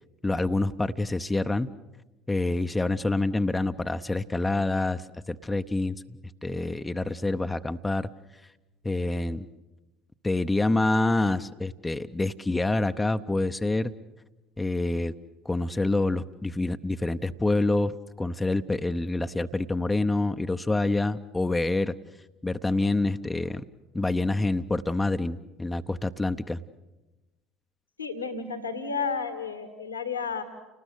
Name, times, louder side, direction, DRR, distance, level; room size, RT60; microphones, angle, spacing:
voice 1, 0.2-1.7 2.3-8.1 8.8-9.5 10.2-13.9 14.6-15.1 15.4-21.9 22.4-23.6 23.9-26.6, left 2 dB, 15° left, 8 dB, 0.8 m, -27 dB
voice 2, 28.0-30.4, left 5 dB, 85° left, 9 dB, 1.8 m, -32 dB
30.0 x 20.0 x 8.2 m, 1.1 s
figure-of-eight pair, 60°, 0 cm